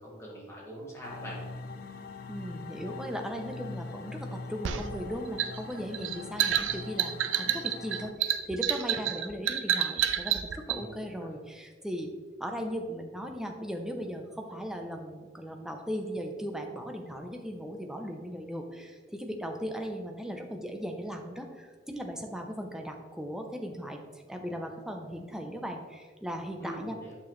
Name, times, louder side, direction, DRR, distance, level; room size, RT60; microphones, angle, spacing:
voice 1, 0.0-1.4 10.7-11.4 26.6-27.2, equal, 15° left, -5 dB, 2.0 m, -43 dB
sound 1, 1.0-8.1, left 3 dB, 50° left, 0.4 m, -42 dB
voice 2, 2.3-12.1 12.4-24.0 24.3-27.0, equal, 5° right, 3 dB, 0.7 m, -37 dB
sound 2, 4.6-10.8, right 10 dB, 90° right, 0.5 m, -29 dB
8.6 x 6.0 x 3.2 m, 1.5 s
head